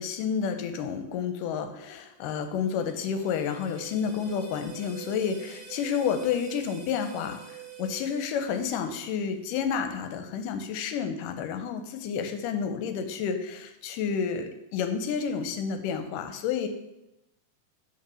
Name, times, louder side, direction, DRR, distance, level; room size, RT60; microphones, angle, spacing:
voice 1, 0.0-16.7, left 7 dB, 80° left, 8 dB, 2.2 m, -30 dB
sound 1, 2.3-9.4, right 9 dB, 60° right, 1.7 m, -46 dB
5.7 x 4.9 x 6.2 m, 0.88 s
omnidirectional pair, 3.8 m